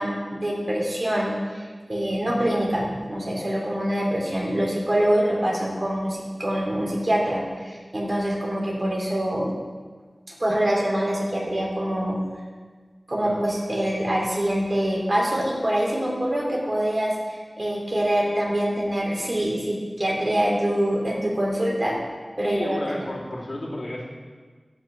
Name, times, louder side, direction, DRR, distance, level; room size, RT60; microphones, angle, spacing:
voice 1, 0.0-9.5 10.4-12.2 13.1-22.0 22.4-23.0, right 1 dB, 50° right, -3 dB, 3.7 m, -25 dB
voice 2, 22.4-24.1, left 1 dB, 60° left, -3 dB, 2.6 m, -32 dB
17.0 x 6.0 x 6.2 m, 1.5 s
wide cardioid pair, 40°, 0 cm